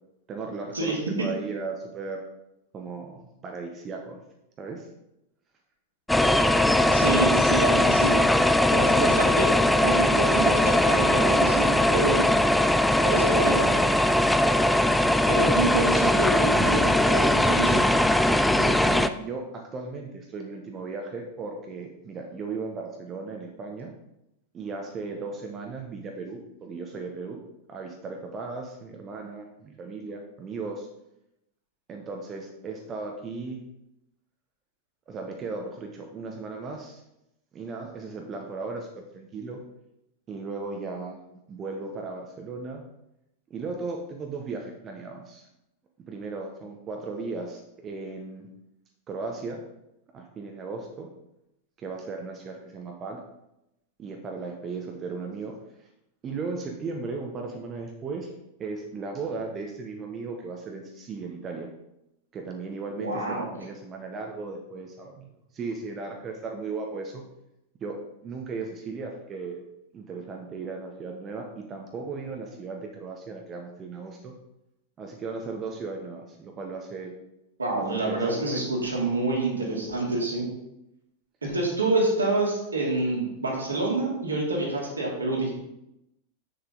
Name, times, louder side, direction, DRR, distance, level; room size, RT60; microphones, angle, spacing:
voice 1, 0.3-2.2 2.7-4.2 4.6-4.9 18.4-23.9 24.5-27.4 27.7-30.9 31.9-33.6 35.1-37.0 37.5-39.6 40.3-41.2 41.5-42.8 43.5-45.5 46.1-48.5 49.1-49.6 50.1-51.1 51.8-53.3 54.0-55.6 56.2-58.3 58.6-61.7 62.3-65.3 65.5-67.2 67.8-69.6 69.9-74.3 75.0-77.1 77.8-78.6, right 4 dB, 25° right, 2 dB, 1.1 m, -36 dB
sound 1, 6.1-19.1, left 1 dB, 5° left, 0.4 m, -21 dB
voice 2, 6.9-8.3 8.7-9.5 9.8-12.3 13.0-13.8 15.3-17.9 62.9-63.5 77.6-80.5 81.4-85.5, right 2 dB, 75° right, -2 dB, 2.6 m, -27 dB
7.8 x 6.8 x 3.9 m, 0.86 s
figure-of-eight pair, 90°, 0 cm